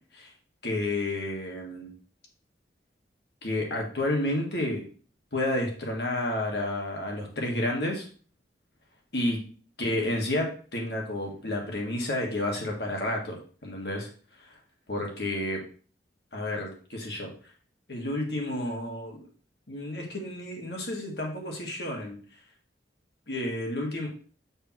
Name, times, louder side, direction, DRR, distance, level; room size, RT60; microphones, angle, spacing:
voice 1, 0.6-1.9 3.4-4.8 5.3-8.1 9.1-9.4 9.8-14.1 14.9-15.6 16.3-17.3 17.9-19.2 19.7-22.2 23.3-24.1, left 1 dB, 70° left, 0 dB, 1.8 m, -30 dB
6.6 x 6.1 x 3.0 m, 0.41 s
head